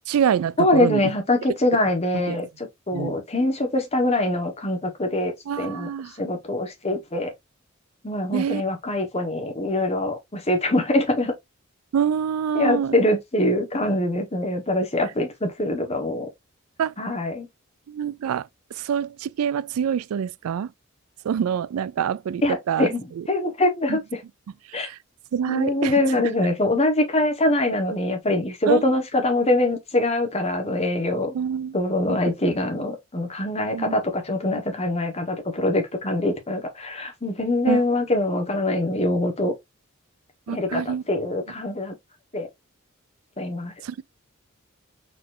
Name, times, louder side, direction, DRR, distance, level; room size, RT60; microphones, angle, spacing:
voice 1, 0.1-1.0 2.3-2.4 2.9-3.2 5.5-6.1 8.3-8.6 11.9-13.0 16.8-16.9 17.9-20.7 21.2-22.9 23.2-23.3 23.9-24.0 24.7-25.0 25.3-26.1 28.7-28.8 31.3-31.7 32.1-32.2 33.7-34.0 37.7-37.8 40.5-41.0 43.8-44.0, right 8 dB, 85° right, 0.3 m, -26 dB
voice 2, 0.6-5.9 6.2-7.3 8.0-11.3 12.5-16.3 17.0-17.5 22.4-24.2 24.7-24.9 25.5-31.4 31.7-39.5 40.5-41.9 42.3-42.5 43.4-43.7, left 1 dB, 30° left, 1.4 m, -24 dB
4.4 x 4.2 x 2.7 m
head